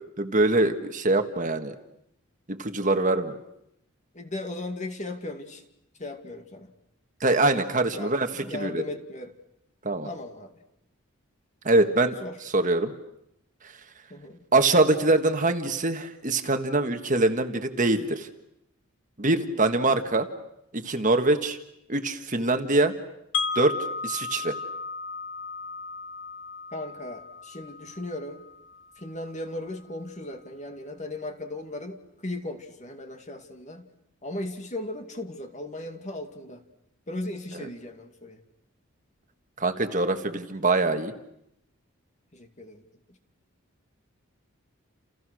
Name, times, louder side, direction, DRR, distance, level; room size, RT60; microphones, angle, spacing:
voice 1, 0.2-1.7 2.5-3.4 7.2-8.8 9.8-10.1 11.6-12.2 12.5-12.9 14.5-18.3 19.2-20.3 20.7-21.6 21.9-22.9 23.5-23.8 24.0-24.5 39.6-41.1, right 2 dB, 35° right, 7 dB, 1.6 m, -23 dB
voice 2, 4.1-5.6 6.0-6.7 7.9-9.4 10.0-10.6 12.2-12.4 14.1-14.4 19.4-19.6 26.7-28.4 29.0-33.9 34.2-36.6 37.1-38.4 42.3-42.8, left 2 dB, 35° left, 6 dB, 2.3 m, -37 dB
Wind chime, 23.3-29.3, left 5 dB, 60° left, 2.1 m, -35 dB
30.0 x 29.0 x 6.4 m, 0.79 s
head